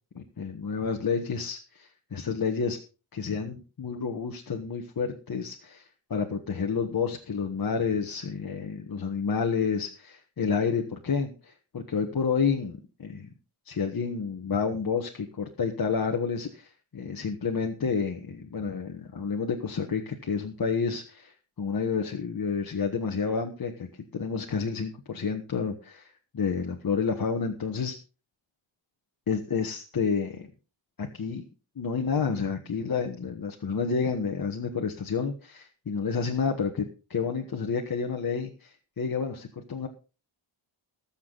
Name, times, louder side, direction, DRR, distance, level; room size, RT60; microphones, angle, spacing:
voice 1, 0.1-2.8 3.1-13.3 13.6-23.9 24.1-28.0 29.3-30.5 31.0-31.4 31.8-39.9, left 5 dB, 45° left, 2 dB, 1.5 m, -30 dB
20.0 x 7.3 x 4.0 m, 0.34 s
wide cardioid pair, 150°, 49 cm